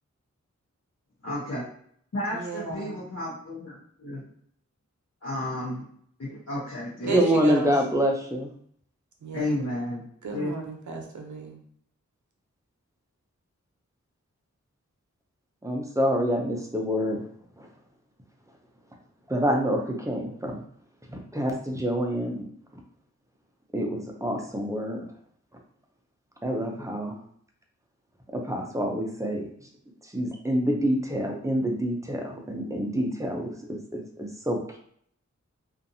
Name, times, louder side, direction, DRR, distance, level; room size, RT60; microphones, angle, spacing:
voice 1, 1.2-1.6 2.1-3.7 4.0-4.2 5.2-5.8 6.2-7.4 9.3-10.0 10.3-10.5, left 1 dB, 55° left, -9 dB, 0.9 m, -32 dB
voice 2, 2.3-2.9 7.0-7.7 9.2-9.6 10.2-11.6, right 2 dB, 75° right, 2 dB, 0.7 m, -34 dB
voice 3, 7.1-8.5 15.6-17.2 17.6-17.7 19.3-20.6 21.1-22.5 23.7-25.0 26.4-27.2 28.3-29.5 30.1-34.6, equal, 10° right, 1 dB, 0.6 m, -27 dB
2.5 x 2.5 x 2.6 m, 0.63 s
wide cardioid pair, 65°, 30 cm